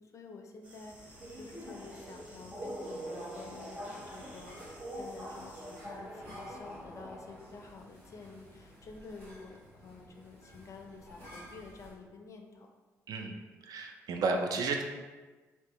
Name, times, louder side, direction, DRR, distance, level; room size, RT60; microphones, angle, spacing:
voice 1, 0.0-4.7 4.9-12.7 13.2-13.4, left 3 dB, 40° left, 3 dB, 0.4 m, -50 dB
sound 1, 0.6-5.8, right 1 dB, 15° right, 0.9 m, -56 dB
Subway metro underground, 0.8-7.6, equal, 30° right, 1.3 m, -44 dB
sound 2, 3.8-11.9, equal, 75° right, 1.2 m, -54 dB
voice 2, 13.6-14.8, right 3 dB, 50° right, 3 dB, 0.4 m, -32 dB
2.7 x 2.1 x 2.9 m, 1.3 s
figure-of-eight pair, 45°, 8 cm